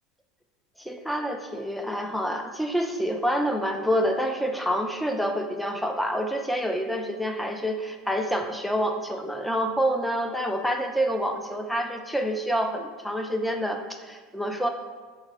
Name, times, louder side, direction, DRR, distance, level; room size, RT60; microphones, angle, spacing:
voice 1, 0.8-14.7, equal, ahead, 4 dB, 0.4 m, -27 dB
4.6 x 2.1 x 4.7 m, 1.5 s
supercardioid pair, 100°, 3 cm